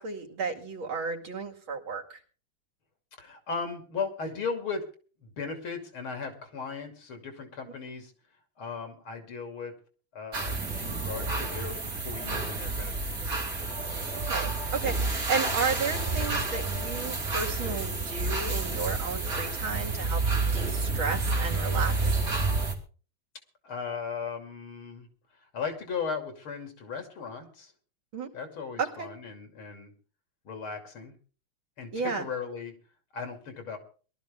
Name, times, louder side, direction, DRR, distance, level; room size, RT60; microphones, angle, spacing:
voice 1, 0.0-2.2 14.3-22.2 28.1-28.3 28.8-29.1 31.9-32.3, right 5 dB, 70° right, 1 dB, 3.1 m, -33 dB
voice 2, 3.2-4.9 5.2-8.1 8.6-9.7 10.1-13.3 23.6-25.1 25.5-27.7 28.3-29.9 30.5-31.2 31.8-32.7 33.1-33.8, left 5 dB, 80° left, 6 dB, 3.5 m, -37 dB
sound 1, 10.3-22.7, right 3 dB, 45° right, 3.3 m, -29 dB
21.5 x 12.5 x 3.5 m, 0.39 s
omnidirectional pair, 2.3 m